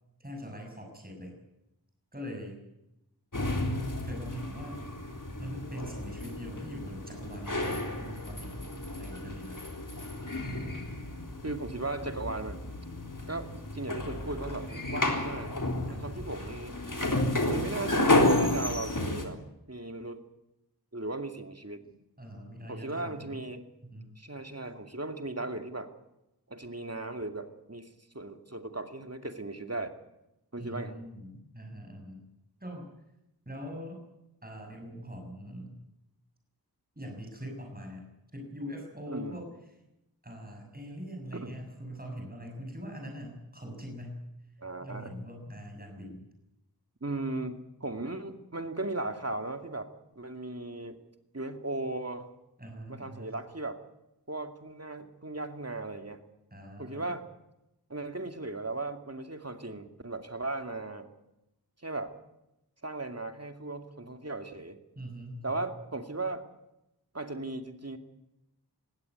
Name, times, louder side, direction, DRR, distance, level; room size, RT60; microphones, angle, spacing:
voice 1, 0.2-1.4 2.1-2.6 4.0-4.9 5.4-9.6 15.9-16.2 22.2-23.4 23.8-24.2 30.6-32.2 32.6-32.9 33.4-34.0 34.4-35.7 36.9-38.0 38.3-39.5 40.2-44.2 44.8-46.3 52.6-53.3 56.5-57.1 64.9-65.7, equal, 25° right, 2 dB, 6.8 m, -42 dB
sound 1, 3.3-19.2, left 1 dB, 50° left, 3.8 m, -31 dB
voice 2, 11.4-12.6 13.3-15.5 15.9-16.8 17.5-19.4 19.7-20.2 20.9-21.9 22.7-23.7 24.2-25.9 26.5-27.9 28.1-30.0 30.5-31.0 39.1-39.4 41.3-41.6 44.6-45.1 47.0-49.9 50.2-51.0 51.3-52.3 52.9-53.8 54.3-56.2 56.8-57.2 57.9-61.1 61.8-62.1 62.8-64.8 65.4-66.4 67.1-68.0, right 2 dB, 40° right, 6 dB, 2.4 m, -37 dB
20.0 x 16.5 x 9.6 m, 0.90 s
wide cardioid pair, 45°, 39 cm